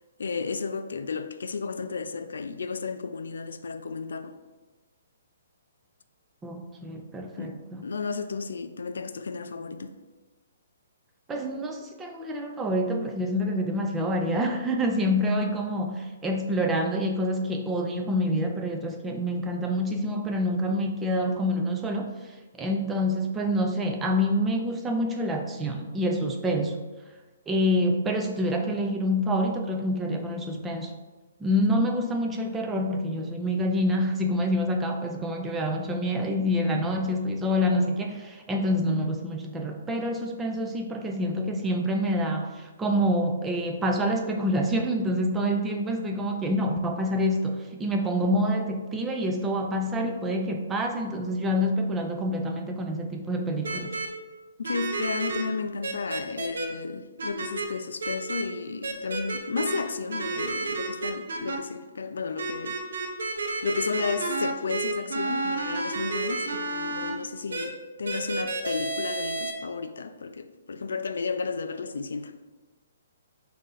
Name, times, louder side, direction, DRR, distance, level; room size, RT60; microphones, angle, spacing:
voice 1, 0.2-4.4 7.4-7.6 7.8-10.0 54.6-62.8 63.6-72.3, left 5 dB, 90° left, 0.3 m, -33 dB
voice 2, 6.4-7.9 11.3-26.8 27.5-30.9 31.4-53.9, equal, 10° right, 0.3 m, -27 dB
sound 1, 53.6-54.1 54.6-55.4 55.8-56.7 57.2-57.7 58.0-58.4 58.8-59.8 60.1-61.6 62.4-67.1 67.5-67.7 68.1-69.5, right 3 dB, 90° right, 0.7 m, -30 dB
4.1 x 2.6 x 3.8 m
hypercardioid pair, 170°, 0 cm